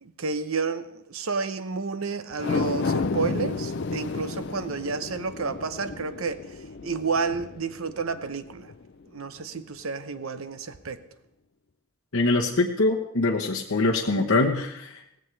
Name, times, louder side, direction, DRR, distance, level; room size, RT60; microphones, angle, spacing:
voice 1, 0.0-8.7 9.1-11.0, right 4 dB, 80° right, 11 dB, 0.8 m, -31 dB
sound 1, 2.3-8.8 9.2-9.3, left 4 dB, 55° left, 0.5 m, -32 dB
voice 2, 12.1-15.2, left 2 dB, 80° left, -1 dB, 1.1 m, -24 dB
17.5 x 15.5 x 3.4 m, 0.77 s
head